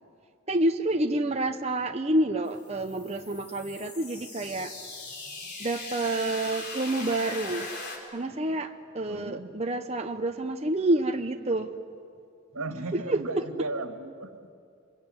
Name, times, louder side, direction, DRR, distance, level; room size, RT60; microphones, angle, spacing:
voice 1, 0.5-4.7 5.6-7.7 8.1-11.7 12.9-13.2, right 1 dB, 30° right, 5 dB, 0.7 m, -28 dB
sound 1, 2.5-8.0, left 3 dB, 45° left, 4.3 m, -40 dB
voice 2, 9.1-9.6 12.5-14.4, right 2 dB, 80° right, 6 dB, 1.9 m, -35 dB
26.0 x 23.0 x 9.8 m, 2.4 s
head